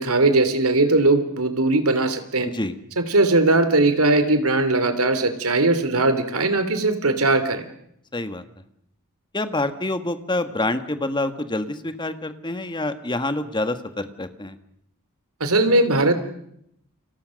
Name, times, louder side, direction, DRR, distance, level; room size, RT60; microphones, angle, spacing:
voice 1, 0.0-2.5 3.0-7.7 15.4-16.1, right 2 dB, 75° right, 10 dB, 3.2 m, -19 dB
voice 2, 8.1-8.4 9.3-14.6, left 2 dB, 20° left, 10 dB, 1.7 m, -27 dB
30.0 x 26.5 x 6.5 m, 0.76 s
head